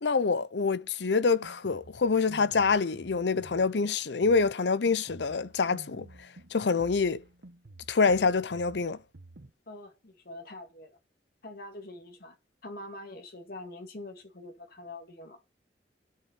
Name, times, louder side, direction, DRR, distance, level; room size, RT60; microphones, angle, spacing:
voice 1, 0.0-6.1 6.5-7.2 7.9-9.0, left 4 dB, 75° left, 0.7 m, -26 dB
Drum kit, 1.2-9.5, right 2 dB, 70° right, 1.0 m, -51 dB
voice 2, 9.7-11.0 11.4-12.4 12.6-15.4, left 2 dB, 60° left, 2.0 m, -44 dB
8.2 x 7.3 x 8.2 m
head